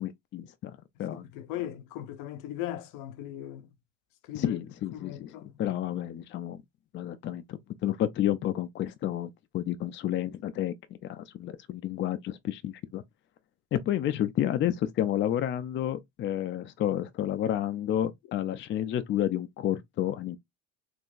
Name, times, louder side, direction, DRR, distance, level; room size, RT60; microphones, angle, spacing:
voice 1, 0.0-1.2 4.3-5.3 5.6-6.6 6.9-10.7 11.0-13.0 13.7-20.4, left 11 dB, 35° left, 0.4 m, -30 dB
voice 2, 1.1-3.7 4.2-4.6 4.9-5.6, left 12 dB, 80° left, 0.7 m, -38 dB
3.7 x 2.5 x 2.4 m
cardioid pair, 120°, 34 cm